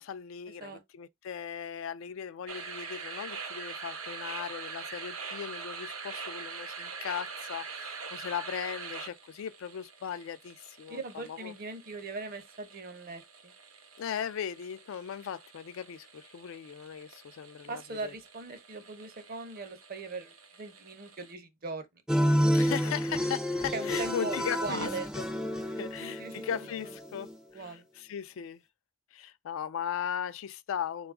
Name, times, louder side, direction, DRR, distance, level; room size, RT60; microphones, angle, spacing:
voice 1, 0.0-11.5 14.0-18.1 22.5-24.9 25.2-25.3 25.6-28.6 29.1-31.1, left 8 dB, 65° left, 0.3 m, -38 dB
sound 1, 2.5-21.3, right 5 dB, 80° right, 0.8 m, -44 dB
voice 2, 10.9-13.5 17.7-20.3 20.6-21.9 23.7-25.1 25.8-26.5 26.8-26.9 27.5-27.8, right 3 dB, 45° right, 0.7 m, -40 dB
sound 2, 22.1-27.4, equal, 5° right, 0.4 m, -30 dB
3.8 x 2.3 x 3.5 m
head